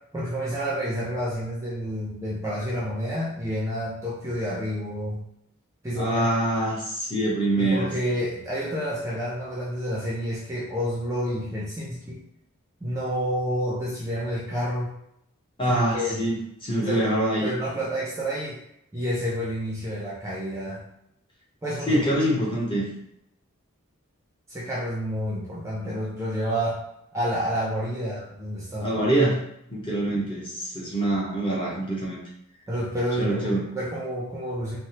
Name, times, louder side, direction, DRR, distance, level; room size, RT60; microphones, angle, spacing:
voice 1, 0.1-5.2 5.8-6.3 7.6-12.2 12.8-14.9 15.7-16.3 16.8-17.1 17.4-18.6 18.9-20.8 21.6-22.1 24.5-26.8 27.1-29.1 32.7-34.8, equal, 15° right, -6 dB, 0.4 m, -29 dB
voice 2, 6.0-7.9 15.6-17.5 21.9-22.9 28.8-29.4 29.7-32.2 33.2-33.7, right 1 dB, 25° left, -5 dB, 0.8 m, -25 dB
3.3 x 2.0 x 2.8 m, 0.77 s
head